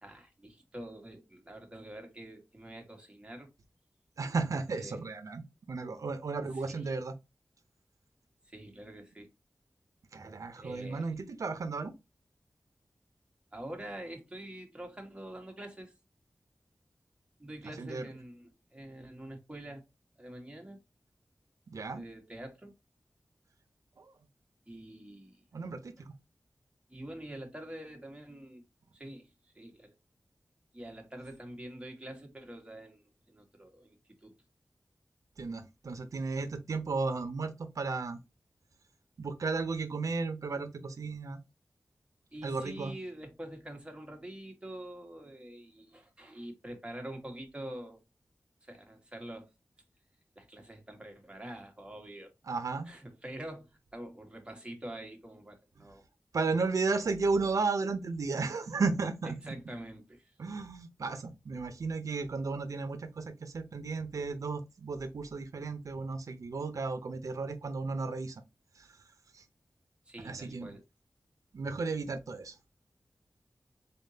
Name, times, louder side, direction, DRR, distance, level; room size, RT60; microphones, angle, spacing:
voice 1, 0.0-3.5 4.7-5.0 6.5-6.9 8.5-9.3 10.6-11.1 13.5-15.9 17.4-19.8 20.2-20.8 21.9-22.7 24.7-25.4 26.9-28.6 28.9-30.0 30.7-33.0 33.3-34.3 42.3-48.0 48.6-49.5 50.3-52.3 52.8-56.0 59.2-60.3 70.1-70.8, right 1 dB, 20° right, 1.4 m, -46 dB
voice 2, 4.2-7.1 10.1-11.9 17.8-18.1 21.7-22.1 24.0-24.1 25.5-26.1 35.4-38.2 39.2-41.4 42.4-42.9 52.5-52.9 56.3-59.5 60.4-68.4 68.8-68.9 69.3-69.4 70.2-70.7 71.5-72.6, right 4 dB, 85° right, 0.6 m, -34 dB
4.1 x 3.5 x 2.7 m
wide cardioid pair, 90°, 6 cm